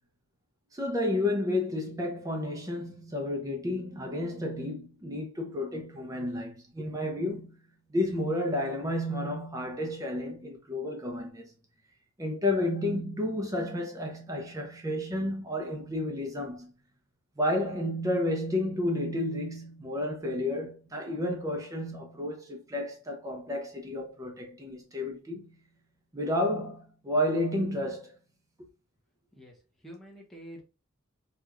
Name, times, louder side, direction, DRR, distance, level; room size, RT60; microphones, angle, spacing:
voice 1, 0.7-7.6 7.9-11.5 12.2-16.7 17.4-25.5 26.1-28.1, left 1 dB, 15° right, 0.5 m, -31 dB
voice 2, 29.4-30.6, equal, ahead, 0.9 m, -47 dB
4.6 x 2.4 x 2.4 m
head